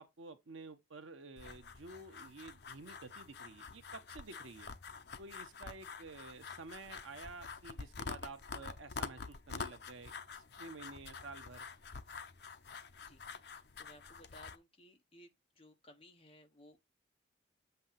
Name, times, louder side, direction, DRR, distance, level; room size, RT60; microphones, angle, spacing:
voice 1, 0.0-4.8 5.2-11.7, right 3 dB, 90° right, 0.9 m, -51 dB
sound 1, 1.4-14.6, left 5 dB, 55° left, 0.7 m, -47 dB
voice 2, 13.5-16.8, left 1 dB, 30° left, 1.1 m, -60 dB
7.8 x 2.8 x 5.7 m
head